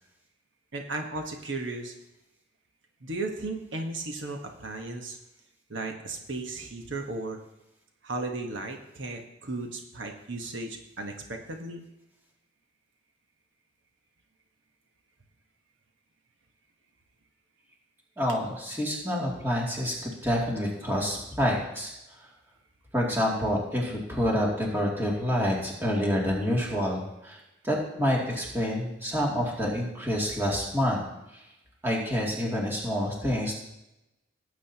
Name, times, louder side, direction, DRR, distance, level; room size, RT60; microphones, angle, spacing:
voice 1, 0.7-1.9 3.0-5.2 5.7-7.4 8.0-11.9, right 2 dB, 80° right, 3 dB, 1.2 m, -35 dB
voice 2, 18.2-21.9 22.9-27.4 27.6-31.0 31.3-31.4 31.8-33.5, equal, 10° right, -3 dB, 2.4 m, -27 dB
17.5 x 8.6 x 2.9 m, 0.91 s
head